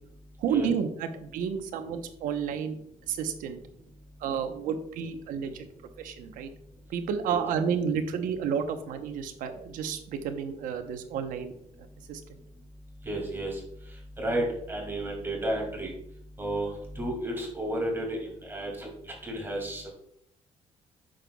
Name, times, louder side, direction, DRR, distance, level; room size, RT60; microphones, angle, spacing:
voice 1, 0.4-2.8 3.1-3.6 4.2-5.7 6.0-6.5 6.9-11.5 12.1-12.4, right 7 dB, 90° right, 8 dB, 0.9 m, -31 dB
voice 2, 11.9-12.7 13.0-19.9, right 1 dB, 15° right, -1 dB, 2.4 m, -33 dB
9.0 x 6.6 x 2.3 m, 0.72 s
cardioid pair, 120°, 14 cm